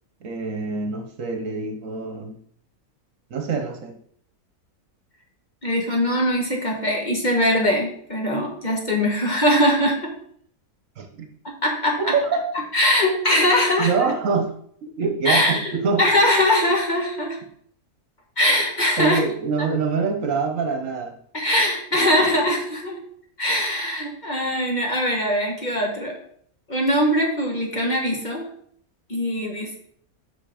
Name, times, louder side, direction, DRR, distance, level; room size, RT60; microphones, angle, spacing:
voice 1, 0.2-2.3 3.3-3.9 11.0-11.3 12.0-12.6 13.8-14.5 14.8-16.0 19.0-21.2 21.9-22.3, right 5 dB, 60° right, 4 dB, 1.3 m, -25 dB
voice 2, 5.6-10.1 11.6-12.1 12.7-14.1 15.2-15.7 16.0-17.4 18.4-19.2 21.3-23.0 23.4-26.1 26.7-28.5 29.1-29.8, left 1 dB, 30° left, -1 dB, 1.3 m, -21 dB
6.0 x 5.6 x 5.0 m, 0.63 s
omnidirectional pair, 1.6 m